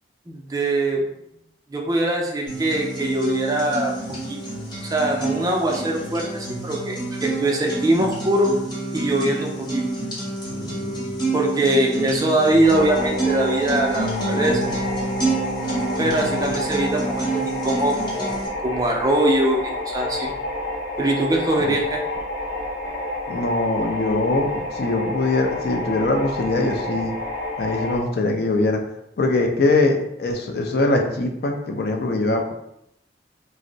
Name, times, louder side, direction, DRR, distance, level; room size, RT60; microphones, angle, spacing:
voice 1, 0.3-1.0 1.7-4.4 4.8-8.5 8.9-9.8 11.3-14.7 16.0-20.3 21.0-22.0, right 1 dB, 20° right, 0 dB, 0.3 m, -22 dB
sound 1, 2.5-18.5, right 2 dB, 25° left, 0.8 m, -28 dB
voice 2, 10.5-11.1 21.6-21.7 23.3-27.1 27.6-28.8 29.2-32.5, left 2 dB, 55° left, 3 dB, 0.4 m, -22 dB
sound 2, 12.6-28.0, left 1 dB, 75° left, 0.8 m, -29 dB
2.5 x 2.0 x 3.8 m, 0.80 s
head